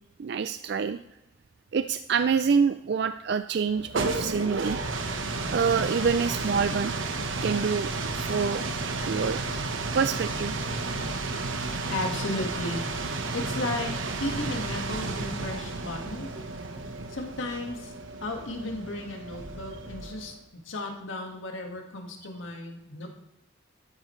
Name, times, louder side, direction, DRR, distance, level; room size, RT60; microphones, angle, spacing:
voice 1, 0.2-1.0 1.7-4.8 5.5-6.9 7.4-8.7 9.1-9.4 9.9-10.6, right 6 dB, 55° right, 11 dB, 0.3 m, -26 dB
sound 1, 3.7-20.4, right 3 dB, 75° right, 1.1 m, -32 dB
voice 2, 11.9-12.8 13.3-16.3 17.1-17.9 18.2-20.3 20.7-23.1, left 2 dB, 75° left, 2 dB, 1.8 m, -34 dB
13.0 x 10.0 x 3.2 m, 0.92 s
head